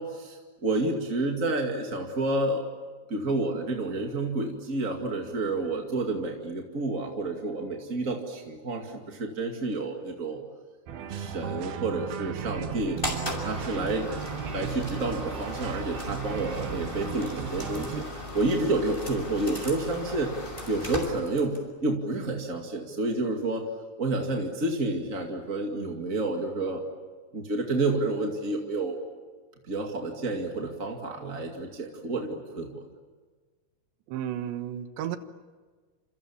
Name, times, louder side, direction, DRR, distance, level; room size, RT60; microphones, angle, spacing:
voice 1, 0.0-2.6 3.1-10.4 11.1-13.0 13.4-14.1 14.5-20.3 20.7-23.6 24.0-26.8 27.3-29.0 29.7-32.7, right 2 dB, 30° right, 1 dB, 1.7 m, -29 dB
sound 1, 10.9-18.0, right 9 dB, 70° right, 3.2 m, -36 dB
sound 2, 13.0-21.7, left 1 dB, 10° left, 5.7 m, -37 dB
voice 2, 34.1-35.2, right 10 dB, 85° right, 9 dB, 3.6 m, -33 dB
30.0 x 27.5 x 7.3 m, 1.4 s
omnidirectional pair, 4.9 m